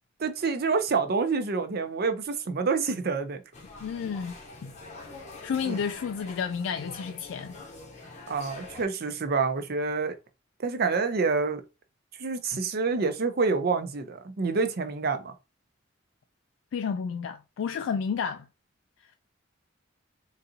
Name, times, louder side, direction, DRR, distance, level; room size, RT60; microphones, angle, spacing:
voice 1, 0.2-3.4 5.7-5.8 8.3-10.2 10.6-11.6 12.2-15.3, right 4 dB, 55° right, 0.6 m, -27 dB
sound 1, 3.5-8.9, left 3 dB, 35° left, 0.7 m, -45 dB
voice 2, 3.8-4.3 4.6-4.7 5.4-7.5 16.7-18.5, left 6 dB, 80° left, 0.3 m, -31 dB
3.9 x 2.6 x 2.6 m
head